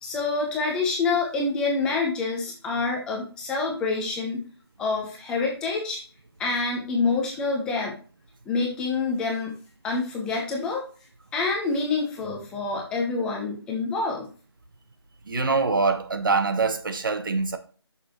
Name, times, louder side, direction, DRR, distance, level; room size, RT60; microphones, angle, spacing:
voice 1, 0.0-4.4 4.8-6.0 6.4-8.0 8.5-9.6 9.8-10.9 11.3-14.3, left 4 dB, 5° left, 0.9 m, -27 dB
voice 2, 15.3-17.6, right 4 dB, 50° right, 1.3 m, -24 dB
9.9 x 6.4 x 3.1 m
figure-of-eight pair, 160°, 14 cm